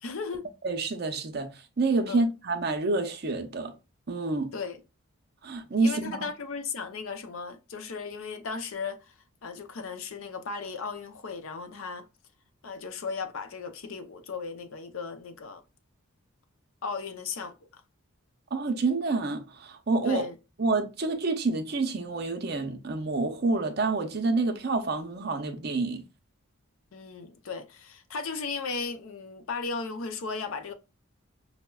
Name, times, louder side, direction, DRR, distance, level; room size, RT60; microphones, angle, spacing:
voice 1, 0.0-0.5 2.1-2.3 4.5-4.8 5.8-9.1 9.4-12.0 12.6-15.6 16.8-17.5 20.0-20.4 26.9-30.7, left 5 dB, 70° left, 0.5 m, -36 dB
voice 2, 0.6-1.5 1.8-3.7 4.1-4.5 5.4-6.3 18.5-20.2 20.6-26.0, right 3 dB, 45° right, 0.5 m, -28 dB
5.4 x 2.1 x 2.2 m
head